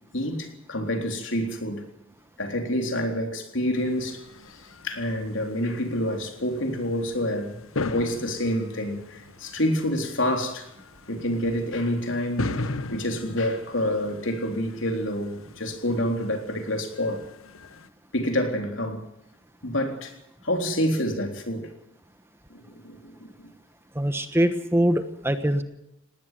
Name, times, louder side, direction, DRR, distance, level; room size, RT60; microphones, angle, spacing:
voice 1, 0.1-1.9 2.4-4.2 4.5-10.7 11.1-12.6 12.9-17.2 18.1-19.0 19.6-20.1 20.4-21.7 22.5-23.1, left 1 dB, 65° left, 3.8 m, -28 dB
sound 1, 3.7-17.9, left 3 dB, 80° left, 1.3 m, -39 dB
voice 2, 23.9-25.6, right 1 dB, 10° right, 1.2 m, -23 dB
19.0 x 18.5 x 7.7 m
head